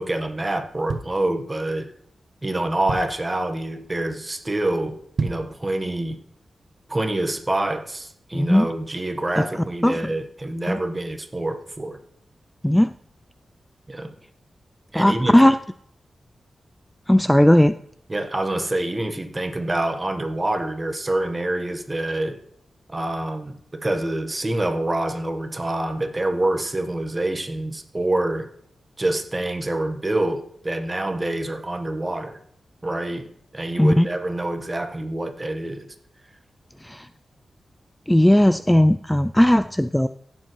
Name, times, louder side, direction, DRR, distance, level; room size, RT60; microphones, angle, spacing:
voice 1, 0.0-1.9 2.4-6.2 6.9-12.0 13.9-14.1 14.9-15.4 18.1-22.4 22.9-28.5 29.0-32.4 32.8-35.9, right 1 dB, 25° right, 6 dB, 1.2 m, -26 dB
sound 1, 0.9-1.8 2.3-2.4 2.6-3.4 3.8-4.1 4.4-4.5 5.0-5.6 6.0-6.1, right 4 dB, 65° right, 1.1 m, -30 dB
voice 2, 8.3-8.7 9.4-9.5 9.8-10.1 10.7-10.8 12.6-12.9 14.9-15.6 17.1-17.7 33.8-34.1 36.8-37.1 38.1-40.1, left 1 dB, 5° left, 12 dB, 0.3 m, -17 dB
16.0 x 7.1 x 3.1 m, 0.69 s
cardioid pair, 80°, 0 cm